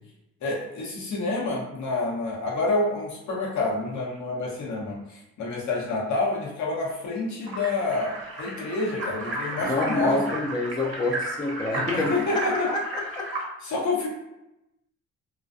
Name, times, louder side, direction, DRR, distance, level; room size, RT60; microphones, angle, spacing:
voice 1, 0.4-10.3 11.9-12.7 13.6-14.1, left 3 dB, 70° left, -4 dB, 0.9 m, -28 dB
sound 1, 7.4-13.4, right 2 dB, 50° right, 0.7 m, -33 dB
voice 2, 9.6-13.3, left 2 dB, 15° left, 0 dB, 0.3 m, -28 dB
2.3 x 2.2 x 2.5 m, 0.91 s
cardioid pair, 90°, 30 cm